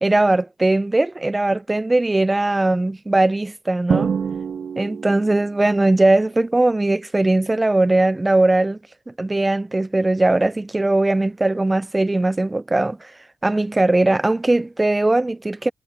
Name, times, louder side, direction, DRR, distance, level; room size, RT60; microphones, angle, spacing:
voice 1, 0.0-4.1 4.8-8.8 9.1-13.1 13.4-15.7, right 2 dB, 15° right, 0.5 m, -19 dB
Drum, 3.9-5.6, right 6 dB, 50° right, 1.9 m, -25 dB
cardioid pair, 90°, 0 cm